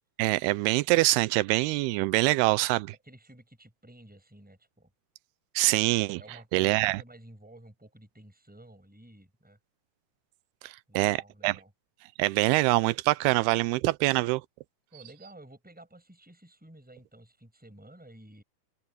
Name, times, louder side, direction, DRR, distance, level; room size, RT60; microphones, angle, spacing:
voice 1, 0.2-2.9 5.6-6.2 6.5-7.0 10.6-11.6 12.2-14.4, right 20 dB, 85° right, 2.6 m, -24 dB
voice 2, 3.0-4.9 6.1-9.6 10.9-11.7 14.9-18.4, right 1 dB, ahead, 6.2 m, -52 dB
omnidirectional pair, 4.6 m